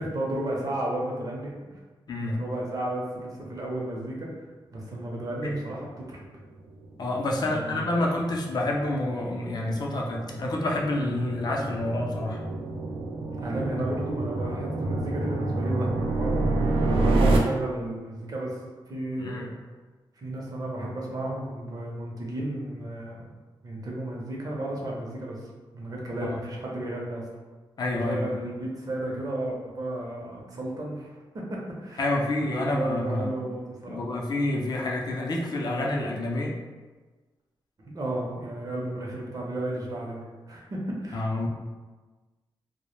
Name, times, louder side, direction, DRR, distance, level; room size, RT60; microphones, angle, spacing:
voice 1, 0.0-1.6 2.3-4.3 4.7-6.2 7.4-8.0 13.4-16.4 16.9-18.6 18.9-19.6 20.2-23.3 23.6-25.4 25.7-27.2 27.9-32.1 32.4-34.0 37.8-41.5, right 1 dB, 45° right, -3 dB, 0.6 m, -33 dB
voice 2, 2.1-2.4 5.4-5.6 7.0-12.4 19.2-19.5 26.2-26.4 27.8-28.4 32.0-33.3 33.9-36.5 41.1-41.5, left 1 dB, 50° left, -1 dB, 0.5 m, -28 dB
sound 1, 6.3-17.4, right 2 dB, 90° right, 0.4 m, -29 dB
2.1 x 2.0 x 3.0 m, 1.3 s
wide cardioid pair, 100°, 9 cm